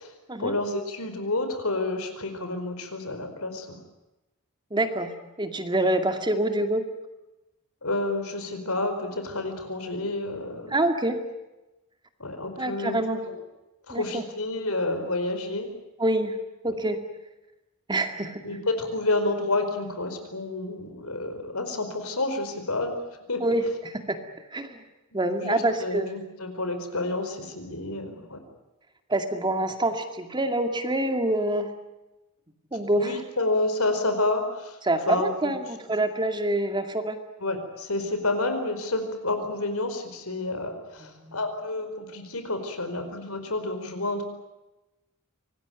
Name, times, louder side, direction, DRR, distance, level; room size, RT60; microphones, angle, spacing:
voice 1, 0.4-3.8 7.8-10.8 12.2-13.3 13.9-15.7 18.4-22.9 23.3-23.4 25.4-28.4 32.9-34.8 35.1-35.5 37.4-44.3, left 2 dB, 75° left, 7 dB, 4.8 m, -29 dB
voice 2, 4.7-6.9 10.7-11.2 12.6-13.2 13.9-14.2 16.0-16.4 16.6-17.0 17.9-18.6 23.4-24.2 24.5-24.8 25.1-26.1 29.1-31.7 32.7-33.2 34.8-37.2 41.0-41.4, right 1 dB, 20° right, 6 dB, 2.2 m, -26 dB
25.5 x 19.5 x 9.2 m, 1.0 s
head